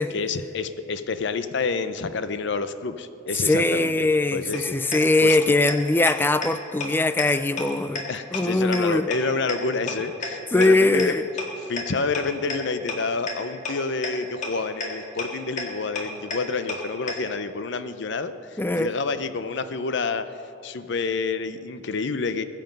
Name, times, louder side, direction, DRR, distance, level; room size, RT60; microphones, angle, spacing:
voice 1, 0.1-4.8 5.2-5.4 8.1-11.1 11.6-20.3 20.6-22.4, left 4 dB, 60° left, 11 dB, 0.6 m, -28 dB
voice 2, 3.4-8.1 8.3-9.1 10.5-11.2 18.6-18.9, left 2 dB, 10° left, 13 dB, 0.3 m, -21 dB
sound 1, 4.5-4.6 4.9-5.0 5.3-5.4 5.7-5.8 6.1-6.2 6.4-6.5 6.8-6.9 7.2-7.3 7.6-7.7 8.0-8.1 8.3-8.4 8.7-8.8 9.1-9.2 9.5-9.6 9.9-10.0 10.2-10.3 10.6-10.7 11.0-11.1 11.4-11.5 11.8-11.9 12.1-12.2 12.5-12.6 12.9-13.0 13.3-13.4 13.6-13.7 14.0-14.1 14.4-14.5 14.8-14.9 15.2-15.3 15.6-15.7 16.0-16.1 16.3-16.4 16.7-16.8 17.1-17.2, left 4 dB, 40° left, 1.9 m, -28 dB
21.0 x 7.6 x 5.3 m, 2.6 s
head